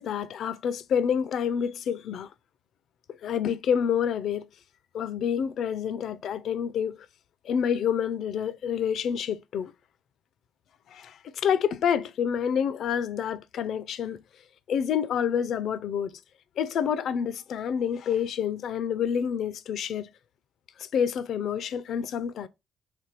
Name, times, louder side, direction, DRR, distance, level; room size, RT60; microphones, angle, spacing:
voice 1, 0.0-2.3 3.1-4.5 4.9-7.0 7.4-9.7 10.9-11.2 11.4-14.2 14.7-16.2 16.6-20.1 20.8-22.5, left 8 dB, 60° left, 0.4 m, -28 dB
3.4 x 3.2 x 4.3 m
cardioid pair, 95°, 0 cm